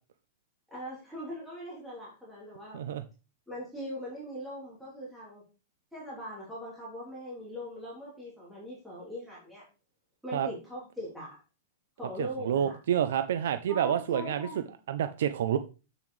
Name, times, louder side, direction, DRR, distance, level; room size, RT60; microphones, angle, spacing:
voice 1, 0.7-2.8 3.5-5.4 5.9-9.6 10.2-11.4 12.0-12.8 13.7-14.7, equal, ahead, -9 dB, 3.4 m, -41 dB
voice 2, 12.2-14.5 14.9-15.6, right 9 dB, 65° right, 10 dB, 0.6 m, -28 dB
8.2 x 7.0 x 3.3 m, 0.32 s
supercardioid pair, 175°, 0 cm